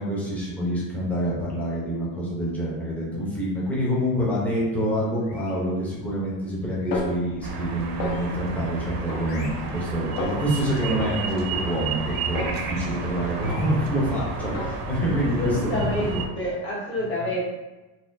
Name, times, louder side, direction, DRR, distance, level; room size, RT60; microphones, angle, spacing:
voice 1, 0.0-16.2, equal, 5° left, -7 dB, 0.5 m, -26 dB
sound 1, 5.2-5.7 6.7-7.1 8.0-8.5 9.2-9.7 10.7-11.1 12.0-12.3 13.3-13.8, left 3 dB, 65° left, 1.0 m, -45 dB
Snare drum, 6.9-7.7 8.0-8.6 9.1-9.9 10.2-10.6 11.0-13.1 13.4-14.0 14.4-15.1, left 2 dB, 50° left, 0.6 m, -34 dB
sound 2, 7.4-16.3, right 4 dB, 50° right, 0.5 m, -32 dB
voice 2, 15.2-17.4, left 1 dB, 25° left, -7 dB, 1.1 m, -28 dB
4.0 x 2.2 x 2.5 m, 1.1 s
cardioid pair, 170°, 46 cm